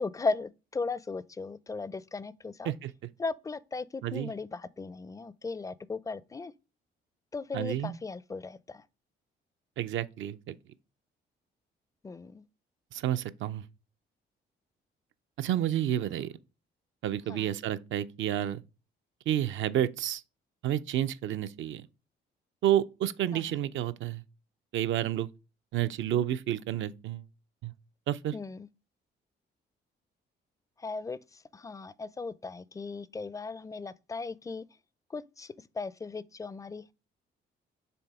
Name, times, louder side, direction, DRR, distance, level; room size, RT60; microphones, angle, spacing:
voice 1, 0.0-2.7 3.2-6.5 7.3-8.9 12.0-12.4 17.3-17.5 23.3-23.4 28.3-28.7 30.8-34.7 35.1-36.9, left 4 dB, 15° left, 0.4 m, -37 dB
voice 2, 4.0-4.3 7.5-8.0 9.8-10.5 12.9-13.6 15.4-16.3 17.0-18.6 19.3-20.2 20.6-21.9 22.6-24.2 24.7-25.3 25.7-27.3 27.6-27.7 28.1-28.3, right 11 dB, 75° right, 0.6 m, -30 dB
7.0 x 3.4 x 4.7 m
cardioid pair, 90°, 20 cm